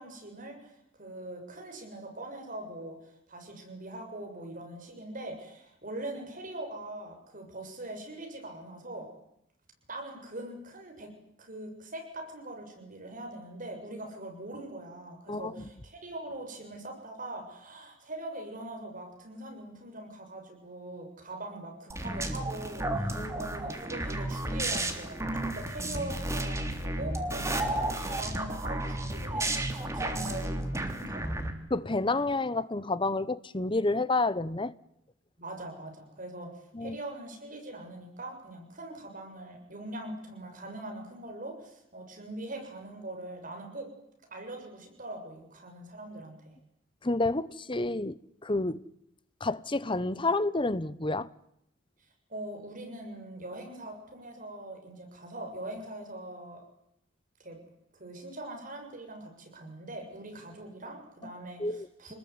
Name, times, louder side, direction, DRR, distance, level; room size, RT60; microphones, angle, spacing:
voice 1, 0.0-9.1 9.9-11.1 11.4-31.4 35.4-43.9 44.3-46.6 52.3-56.6 57.4-57.6 57.9-62.1, right 1 dB, 45° right, 7.5 m, -42 dB
voice 2, 15.3-15.7 23.1-23.5 31.7-34.7 36.7-37.0 47.0-48.8 49.4-51.3 61.6-61.9, left 2 dB, 25° left, 1.0 m, -29 dB
sound 1, 21.9-31.5, right 1 dB, 15° right, 3.4 m, -32 dB
28.5 x 20.5 x 9.7 m
head